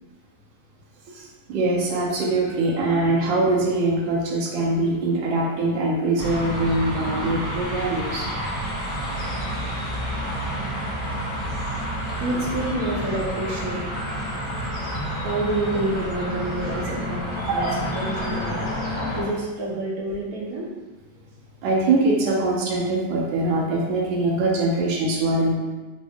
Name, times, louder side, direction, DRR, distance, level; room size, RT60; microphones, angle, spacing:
voice 1, 1.5-8.3 17.5-17.8 19.0-19.1 21.6-25.6, right 2 dB, 80° right, -3 dB, 1.3 m, -23 dB
sound 1, 6.2-19.2, equal, 90° left, 0.3 m, -29 dB
voice 2, 12.2-13.8 15.2-18.7 19.1-20.7, right 1 dB, 65° right, -4 dB, 1.0 m, -28 dB
3.4 x 2.1 x 3.4 m, 1.2 s
omnidirectional pair, 2.0 m